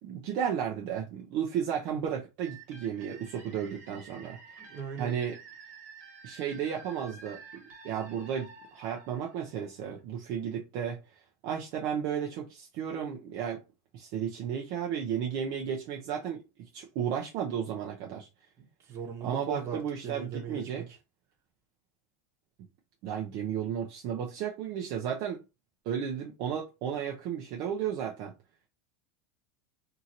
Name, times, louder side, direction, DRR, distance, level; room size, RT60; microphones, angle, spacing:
voice 1, 0.0-4.6 5.0-5.4 6.2-13.6 13.9-18.3 19.2-20.9 23.0-25.4 25.9-28.3, right 8 dB, 50° right, 0.6 m, -34 dB
sound 1, 2.4-10.0, right 4 dB, 85° right, 1.5 m, -51 dB
voice 2, 4.6-5.1 18.9-20.9, right 6 dB, 35° right, 1.0 m, -38 dB
2.8 x 2.8 x 2.5 m
supercardioid pair, 145°, 9 cm